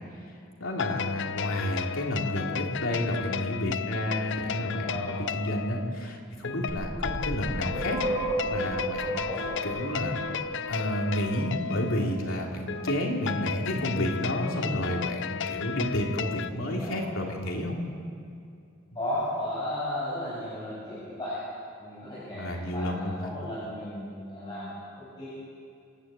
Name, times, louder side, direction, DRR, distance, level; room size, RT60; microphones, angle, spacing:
voice 1, 0.6-8.0 8.5-10.1 10.7-17.8 22.3-23.3, left 1 dB, 85° left, 0 dB, 3.2 m, -31 dB
sound 1, 0.7-16.5, left 7 dB, 60° left, 0.6 m, -34 dB
voice 2, 4.8-5.2 6.9-7.2 9.2-9.5 14.5-14.7 16.5-17.0 19.0-21.4 21.8-25.3, left 1 dB, 20° left, -11 dB, 7.5 m, -35 dB
sound 2, 6.7-11.5, right 2 dB, 30° right, 5.7 m, -34 dB
27.0 x 13.0 x 9.0 m, 2.4 s
head